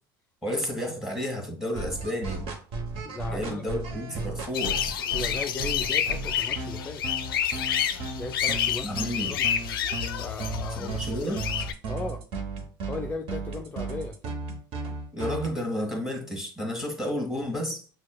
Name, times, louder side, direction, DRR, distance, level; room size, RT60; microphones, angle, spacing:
voice 1, 0.4-2.5 3.3-4.8 8.8-9.3 10.8-11.4 15.1-17.9, left 1 dB, 5° right, 1.5 m, -31 dB
sound 1, 1.7-15.5, right 3 dB, 50° right, 0.9 m, -35 dB
voice 2, 3.0-3.6 5.1-7.0 7.9-9.5 10.2-11.4 11.9-12.2 12.9-14.2, left 3 dB, 15° left, 0.4 m, -37 dB
sound 2, 4.5-11.7, left 9 dB, 80° left, 0.4 m, -29 dB
6.1 x 2.3 x 2.2 m
hypercardioid pair, 75°, 12 cm